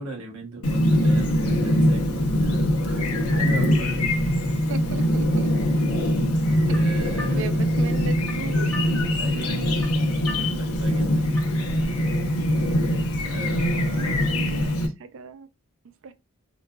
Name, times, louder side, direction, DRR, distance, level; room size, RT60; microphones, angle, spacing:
voice 1, 0.0-4.1 6.6-7.7 9.2-11.5 13.2-14.3, right 2 dB, 80° right, 0.9 m, -38 dB
Chirp tweet, 0.6-14.9, equal, 85° left, 0.8 m, -22 dB
voice 2, 4.7-5.5 6.0-6.1 6.7-6.8 7.3-8.7 11.0-11.1 13.9-14.7 15.0-15.5 16.0-16.1, right 5 dB, 60° right, 0.4 m, -36 dB
sound 1, 6.3-11.7, left 2 dB, 10° left, 0.5 m, -43 dB
3.9 x 2.3 x 2.2 m
head